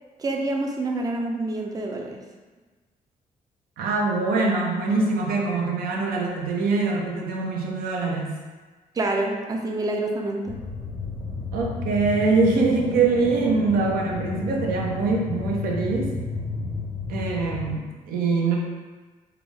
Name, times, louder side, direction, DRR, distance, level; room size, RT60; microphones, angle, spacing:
voice 1, 0.2-2.2 8.9-10.6, right 2 dB, 25° right, 1 dB, 0.5 m, -27 dB
voice 2, 3.8-8.3 11.5-16.1 17.1-18.6, right 3 dB, 80° right, -1 dB, 0.6 m, -23 dB
sound 1, 10.5-17.8, left 3 dB, 85° left, 0.6 m, -32 dB
3.4 x 2.0 x 3.5 m, 1.3 s
cardioid pair, 95°, 15 cm